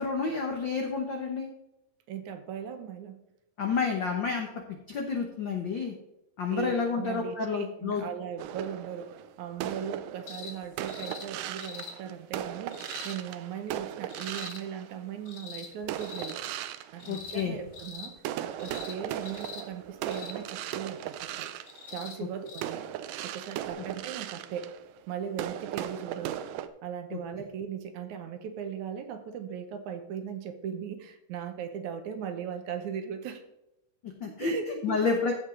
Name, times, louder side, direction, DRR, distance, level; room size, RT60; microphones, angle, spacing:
voice 1, 0.0-1.5 3.6-4.5 4.9-5.9 6.4-8.0 17.1-17.5 27.1-27.2 34.0-35.3, left 5 dB, 70° left, 2 dB, 1.1 m, -30 dB
voice 2, 2.1-3.2 6.5-16.4 16.9-18.1 18.4-21.5 21.9-22.9 23.2-24.7 25.1-26.5 26.8-33.4 34.3-35.0, right 7 dB, 70° right, 8 dB, 2.2 m, -38 dB
sound 1, 8.4-15.3 15.8-17.8 18.2-26.7, right 11 dB, 85° right, 2.2 m, -38 dB
sound 2, 10.3-10.6 10.9-11.3 11.6-11.9 12.7-13.2 14.1-14.6 15.3-15.7 16.0-16.4 17.0-17.5 17.7-18.1 18.6-19.0 19.2-19.6 20.1-20.4 21.7-22.2 22.5-22.6 23.7-23.8, left 5 dB, 85° left, 3.1 m, -43 dB
15.5 x 5.4 x 3.8 m, 0.87 s
omnidirectional pair, 3.7 m